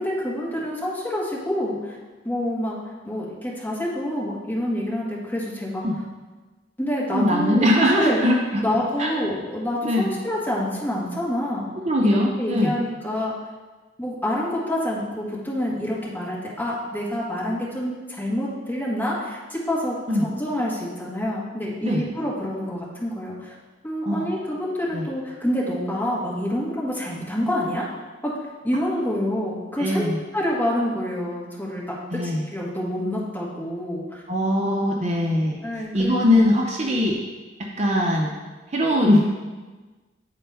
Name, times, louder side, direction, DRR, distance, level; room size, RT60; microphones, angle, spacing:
voice 1, 0.0-2.0 2.2-2.8 3.0-5.8 6.8-8.2 8.5-11.6 12.0-13.3 14.0-23.5 23.8-27.9 28.2-28.3 28.6-30.0 30.3-31.8 32.1-34.2 35.6-36.4, left 1 dB, 10° left, -7 dB, 1.6 m, -27 dB
voice 2, 7.1-8.6 9.0-9.1 9.8-10.1 11.9-12.7 20.1-20.3 21.8-22.0 24.1-24.3 24.9-25.1 29.8-30.2 32.1-32.5 34.3-35.6 35.9-37.2 37.6-38.3 38.7-39.5, left 1 dB, 35° right, -1 dB, 0.6 m, -21 dB
9.0 x 4.3 x 3.4 m, 1.3 s
head